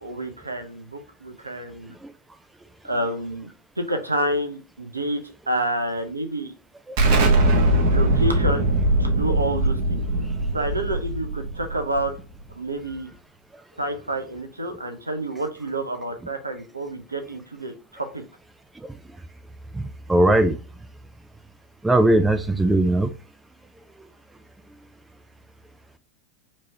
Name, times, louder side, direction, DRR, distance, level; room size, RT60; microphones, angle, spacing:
voice 1, 0.0-1.9 2.8-3.5 3.8-5.2 5.5-6.5 7.9-8.7 9.0-10.0 10.5-12.1 12.6-13.1 13.8-18.2, right 1 dB, 80° right, 6 dB, 0.7 m, -28 dB
Explosion, 7.0-12.4, right 1 dB, 45° right, 1.1 m, -21 dB
voice 2, 20.1-20.5 21.8-23.1, right 1 dB, 10° right, 9 dB, 0.4 m, -18 dB
4.5 x 3.0 x 2.7 m, 0.34 s
figure-of-eight pair, 90°, 0 cm